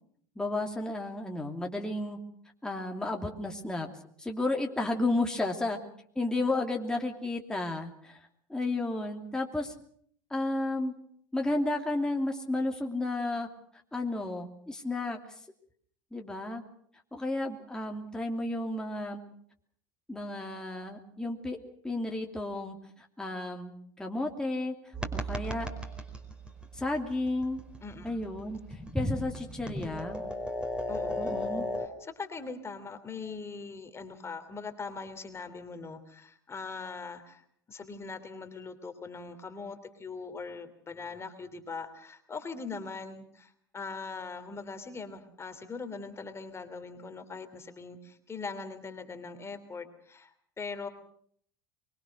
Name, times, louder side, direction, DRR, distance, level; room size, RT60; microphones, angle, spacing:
voice 1, 0.4-2.2 2.6-3.9 4.2-5.8 6.1-9.7 10.3-10.9 11.3-13.5 13.9-15.2 16.1-16.6 17.1-19.2 20.1-21.6 21.8-24.7 25.1-25.7 26.7-27.6 28.0-30.2 31.2-31.6, left 2 dB, 5° left, 1 dB, 2.9 m, -32 dB
sound 1, 24.9-31.9, equal, 10° right, 4.7 m, -36 dB
voice 2, 27.8-28.1 30.9-37.4 37.7-50.9, left 4 dB, 25° left, 8 dB, 3.1 m, -41 dB
24.5 x 22.5 x 6.5 m, 0.63 s
hypercardioid pair, 85°, 11 cm